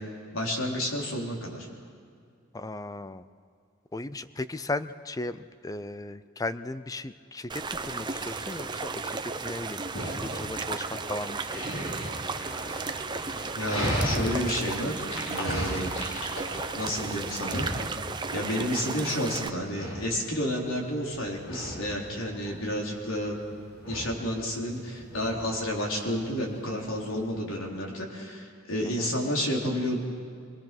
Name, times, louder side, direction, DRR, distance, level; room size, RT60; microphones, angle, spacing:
voice 1, 0.3-1.7 13.6-15.9 16.7-17.7 18.3-23.4 23.9-30.0, equal, 70° left, -1 dB, 3.9 m, -30 dB
voice 2, 2.5-3.3 3.9-11.7 29.0-29.1, left 2 dB, 15° left, 13 dB, 0.5 m, -36 dB
sound 1, 7.5-19.5, right 4 dB, 20° right, 0.7 m, -34 dB
Dog, 8.1-27.3, equal, 85° left, 6.2 m, -37 dB
24.5 x 22.0 x 6.1 m, 2.3 s
head